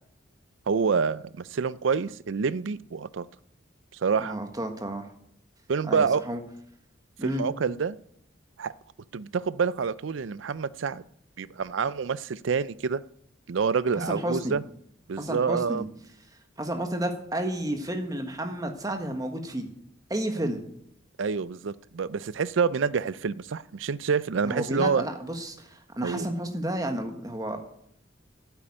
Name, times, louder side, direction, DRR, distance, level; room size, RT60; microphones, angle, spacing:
voice 1, 0.7-3.3 4.0-4.4 5.7-6.2 7.2-8.0 8.6-8.7 9.1-11.0 11.4-13.0 13.5-14.6 15.1-15.9 21.2-25.0 26.0-26.3, right 5 dB, 75° right, 18 dB, 0.5 m, -27 dB
voice 2, 4.2-5.1 5.9-6.4 7.2-7.4 13.9-14.5 15.2-15.8 16.6-19.7 20.1-20.7 24.4-27.6, right 1 dB, 20° right, 5 dB, 1.4 m, -31 dB
9.2 x 8.7 x 8.6 m, 0.73 s
head